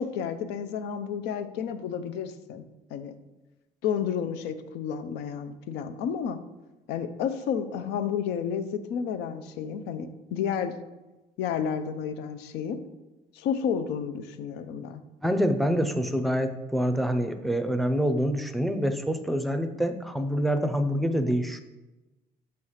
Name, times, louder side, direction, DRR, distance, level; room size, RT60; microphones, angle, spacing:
voice 1, 0.0-2.6 2.9-3.1 3.8-6.4 6.9-10.7 11.4-12.8 13.3-15.0, left 7 dB, 85° left, 10 dB, 0.6 m, -31 dB
voice 2, 15.2-21.6, equal, ahead, 8 dB, 0.5 m, -26 dB
5.8 x 3.2 x 5.5 m, 1.1 s
cardioid pair, 110°, 17 cm